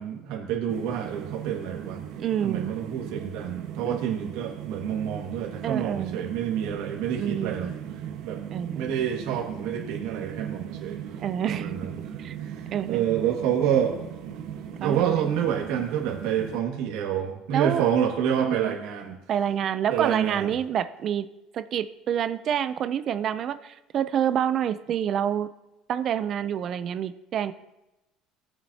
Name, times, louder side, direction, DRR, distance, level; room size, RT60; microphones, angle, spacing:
voice 1, 0.0-2.0 2.4-7.7 8.2-8.4 8.7-11.0 11.5-12.0 12.4-14.0 14.8-19.2 19.9-20.6, right 9 dB, 85° right, -1 dB, 1.8 m, -28 dB
sound 1, 0.7-16.6, right 9 dB, 65° right, 1.3 m, -38 dB
voice 2, 2.2-2.7 3.8-4.3 5.6-6.3 7.2-7.7 8.5-8.9 11.2-11.7 12.2-12.4 12.7-13.1 14.8-15.3 17.5-17.8 18.4-18.8 19.3-21.3 21.5-25.5 25.9-27.5, right 9 dB, 35° right, 12 dB, 0.5 m, -28 dB
20.0 x 7.4 x 2.8 m, 0.97 s
cardioid pair, 165°, 0 cm